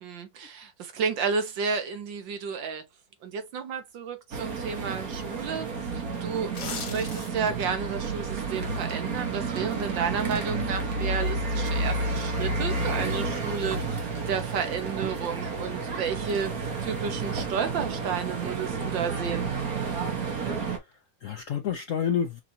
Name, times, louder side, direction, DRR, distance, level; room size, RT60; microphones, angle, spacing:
voice 1, 0.0-2.8 3.2-5.7 5.9-13.8 14.3-16.5 16.8-19.5, right 6 dB, 75° right, 1.7 m, -32 dB
sound 1, 4.3-20.8, right 3 dB, 55° right, 1.6 m, -31 dB
sound 2, 6.4-7.6 8.0-8.1, left 5 dB, 50° left, 1.5 m, -37 dB
voice 2, 20.0-22.4, left 8 dB, 70° left, 0.7 m, -31 dB
5.9 x 2.9 x 2.7 m
omnidirectional pair, 2.0 m